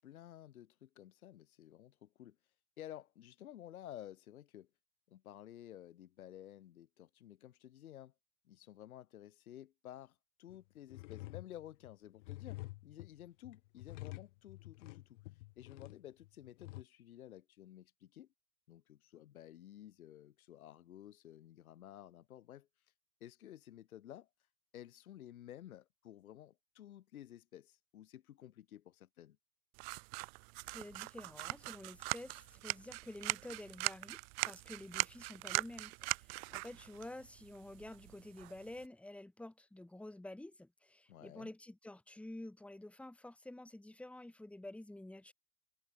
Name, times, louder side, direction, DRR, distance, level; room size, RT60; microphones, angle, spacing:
voice 1, 0.0-4.7 5.1-8.1 8.4-18.3 18.7-22.9 23.2-24.3 24.7-29.4 41.1-41.5, left 12 dB, 70° left, 2.7 m, -53 dB
sound 1, 10.5-10.6 10.9-16.8, left 20 dB, 50° left, 2.5 m, -49 dB
sound 2, 29.8-38.9, right 33 dB, 40° right, 1.1 m, -41 dB
voice 2, 30.7-34.2 34.5-45.3, left 1 dB, 5° left, 2.4 m, -50 dB
hypercardioid pair, 110°, 45 cm